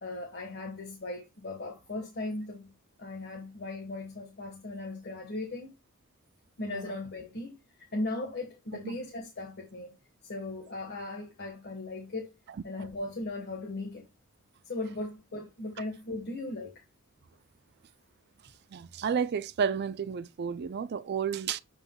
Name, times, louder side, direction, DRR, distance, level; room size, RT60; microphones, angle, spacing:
voice 1, 0.0-2.7 3.0-5.7 6.6-7.6 7.9-9.9 10.2-12.3 12.6-14.0 14.6-16.7, left 2 dB, 50° left, 1.4 m, -37 dB
voice 2, 18.7-21.6, right 7 dB, 50° right, 0.4 m, -31 dB
7.9 x 5.5 x 2.3 m
head